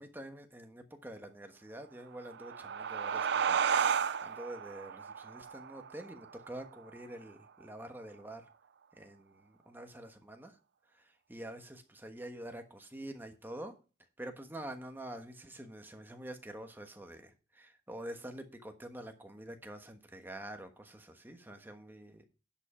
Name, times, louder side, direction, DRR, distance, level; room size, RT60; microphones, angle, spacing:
voice 1, 0.0-3.6 4.2-8.4 9.0-10.5 11.3-13.7 14.2-22.2, right 1 dB, 10° right, 5 dB, 1.3 m, -46 dB
sound 1, 2.1-7.3, right 7 dB, 65° right, 0.5 m, -33 dB
10.5 x 5.6 x 5.5 m, 0.32 s
head